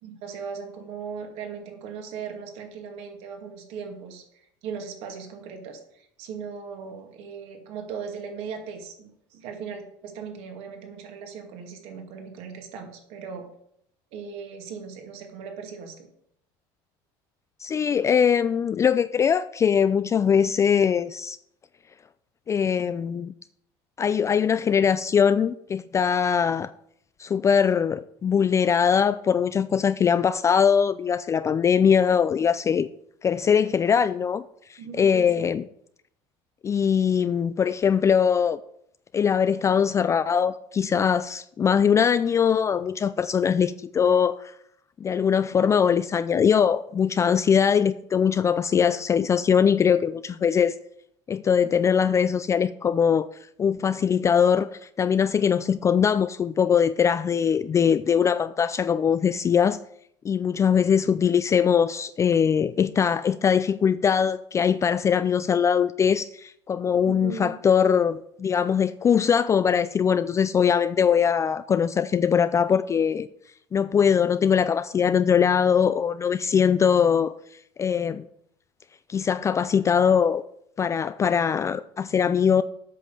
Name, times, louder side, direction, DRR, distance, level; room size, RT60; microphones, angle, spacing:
voice 1, 0.0-13.5 14.1-16.1 34.8-35.5 67.0-67.5, right 6 dB, 65° right, 2.3 m, -38 dB
voice 2, 17.6-21.4 22.5-23.3 24.0-26.7 27.2-32.9 33.2-34.4 34.7-35.6 36.6-38.6 39.1-44.5 45.0-50.8 51.3-53.3 53.6-59.8 60.2-73.3 73.7-77.3 77.8-78.2 79.1-80.4 80.8-82.6, left 7 dB, 25° left, 0.4 m, -21 dB
8.3 x 5.6 x 7.1 m
supercardioid pair, 95°, 11 cm